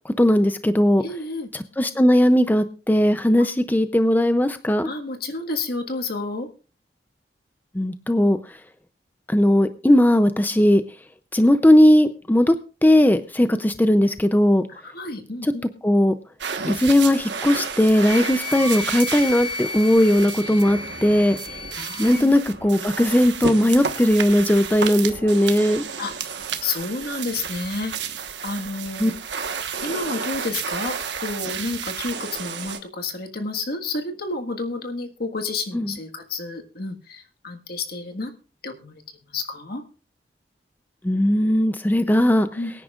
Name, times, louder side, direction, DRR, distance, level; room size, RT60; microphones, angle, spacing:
voice 1, 0.2-1.0 1.8-4.9 7.8-8.4 9.3-10.8 11.3-12.5 12.8-14.6 15.8-16.1 16.7-21.4 22.0-25.8 29.0-29.1 35.7-35.9 41.0-42.5, left 1 dB, 10° left, 10 dB, 0.5 m, -18 dB
voice 2, 1.0-1.5 3.4-3.5 4.8-6.5 13.4-13.6 14.7-15.6 21.7-22.3 26.0-26.1 26.6-27.9 28.4-29.1 29.8-38.3 38.6-39.8 42.5-42.7, left 3 dB, 60° left, 4 dB, 1.6 m, -30 dB
sound 1, 16.4-32.8, right 6 dB, 85° right, 1.3 m, -32 dB
Wind instrument woodwind instrument, 18.0-22.2, left 4 dB, 45° left, 4.3 m, -33 dB
23.0 x 9.9 x 2.4 m, 0.36 s
head